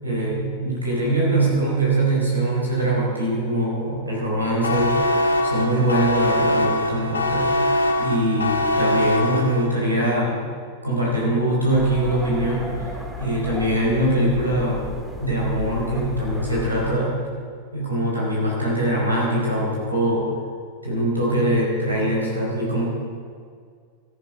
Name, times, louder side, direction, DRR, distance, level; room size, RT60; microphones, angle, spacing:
voice 1, 0.0-5.1 5.4-7.6 8.0-10.4 10.8-14.9 15.2-17.3 17.7-20.3 20.8-22.9, right 1 dB, 85° right, -4 dB, 4.7 m, -22 dB
sound 1, 4.6-9.9, left 1 dB, 75° left, 1.4 m, -22 dB
sound 2, 11.7-17.0, equal, 5° right, 1.8 m, -35 dB
14.0 x 13.5 x 5.2 m, 2.1 s
figure-of-eight pair, 90°, 0 cm